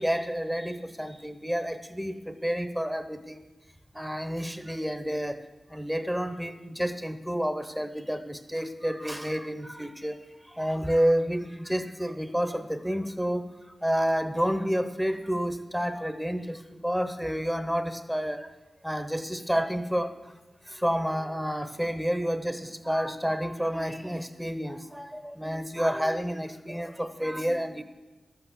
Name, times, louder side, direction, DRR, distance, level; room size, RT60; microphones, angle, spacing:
voice 1, 0.0-3.4 3.9-5.4 5.7-10.2 10.5-13.5 13.8-18.5 18.8-20.2 20.7-27.8, equal, 5° right, 10 dB, 0.9 m, -29 dB
12.0 x 8.6 x 7.1 m, 1.1 s
cardioid pair, 50°, 0 cm